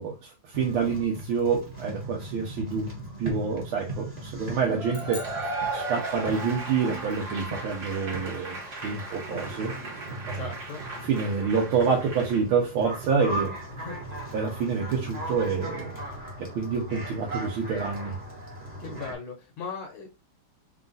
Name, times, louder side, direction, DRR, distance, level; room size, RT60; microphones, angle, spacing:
voice 1, 0.0-2.9 3.2-5.3 5.7-9.7 10.2-10.4 11.0-13.5 14.3-16.0 16.4-18.2, right 5 dB, 80° right, 1.6 m, -27 dB
sound 1, 0.5-19.1, right 1 dB, 25° right, 1.0 m, -39 dB
Cheering / Applause / Crowd, 4.8-12.4, right 2 dB, 50° right, 1.9 m, -36 dB
sound 2, 4.9-6.5, left 3 dB, 40° left, 0.7 m, -46 dB
voice 2, 10.3-10.8 13.8-14.1 18.8-20.1, left 4 dB, 85° left, 1.8 m, -38 dB
4.2 x 2.4 x 3.8 m
omnidirectional pair, 2.3 m